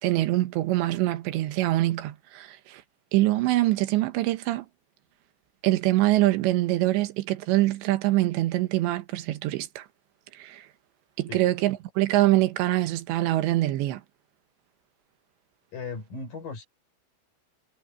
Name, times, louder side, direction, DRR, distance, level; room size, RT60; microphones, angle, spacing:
voice 1, 0.0-2.8 3.1-4.7 5.6-9.9 10.3-10.7 11.2-14.0, right 16 dB, 75° right, 2.9 m, -24 dB
voice 2, 15.7-16.6, left 4 dB, 45° left, 5.4 m, -37 dB
omnidirectional pair, 6.0 m